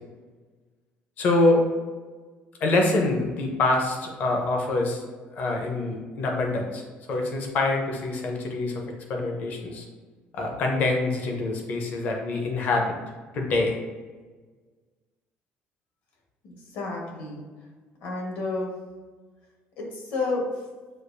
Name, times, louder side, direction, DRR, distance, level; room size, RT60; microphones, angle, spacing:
voice 1, 1.2-1.6 2.6-5.0 5.3-8.8 9.1-9.8 10.3-12.9 13.3-13.8, left 2 dB, 40° left, 1 dB, 0.7 m, -25 dB
voice 2, 16.4-17.4 18.0-18.7 19.8-20.4, left 3 dB, 60° left, -1 dB, 1.2 m, -30 dB
6.6 x 2.4 x 2.6 m, 1.4 s
cardioid pair, 175°, 4 cm